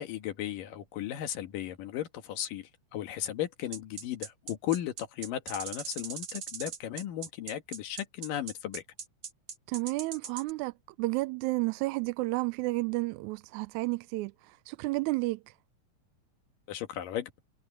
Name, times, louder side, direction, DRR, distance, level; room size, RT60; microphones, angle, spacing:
voice 1, 0.0-8.8 16.7-17.3, left 11 dB, 85° left, 3.2 m, -35 dB
sound 1, 3.7-10.5, right 6 dB, 55° right, 2.8 m, -40 dB
voice 2, 9.7-15.4, right 22 dB, 80° right, 1.7 m, -31 dB
omnidirectional pair, 3.7 m